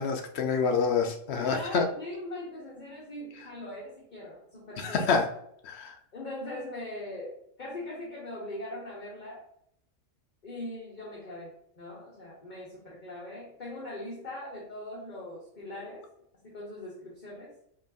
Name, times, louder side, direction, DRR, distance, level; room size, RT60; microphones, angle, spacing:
voice 1, 0.0-1.9 4.8-5.3 5.6-5.9, left 5 dB, 60° left, 4 dB, 0.9 m, -27 dB
voice 2, 1.3-5.1 6.1-9.4 10.4-16.0 16.4-17.5, left 1 dB, 40° left, -5 dB, 1.1 m, -41 dB
5.2 x 3.1 x 2.6 m, 0.71 s
omnidirectional pair, 1.3 m